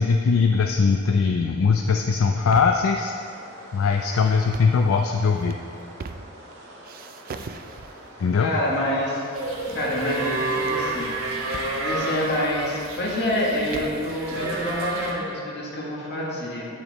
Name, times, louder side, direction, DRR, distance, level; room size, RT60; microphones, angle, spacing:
voice 1, 0.0-3.1 3.7-5.6 8.2-8.5, left 5 dB, 75° left, 4 dB, 0.4 m, -20 dB
sound 1, 2.1-2.9 4.4-4.8 5.3-6.5 6.8-8.1 8.8-9.4 9.7-10.7 11.5-11.8 12.0-12.1 12.6-14.0, right 4 dB, 45° right, 0.4 m, -41 dB
sound 2, 3.0-11.3, right 1 dB, 60° right, 1.6 m, -46 dB
voice 2, 8.4-9.2 9.7-11.1 11.8-16.7, left 1 dB, 55° left, -4 dB, 1.7 m, -27 dB
sound 3, 9.3-15.1, right 2 dB, 90° right, 1.2 m, -29 dB
8.4 x 6.0 x 4.0 m, 2.5 s
head